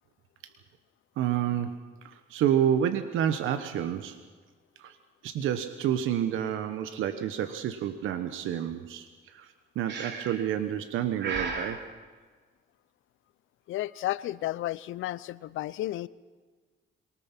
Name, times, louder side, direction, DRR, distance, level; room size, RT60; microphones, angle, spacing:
voice 1, 1.2-1.7 2.0-4.2 4.8-5.0 5.2-11.8, right 10 dB, 85° right, 10 dB, 1.2 m, -29 dB
Breathing, 9.9-10.5 11.2-11.8, right 4 dB, 60° right, 3.5 m, -34 dB
voice 2, 13.7-16.1, left 15 dB, 80° left, 18 dB, 0.7 m, -32 dB
23.0 x 19.5 x 6.1 m, 1.4 s
cardioid pair, 90°, 20 cm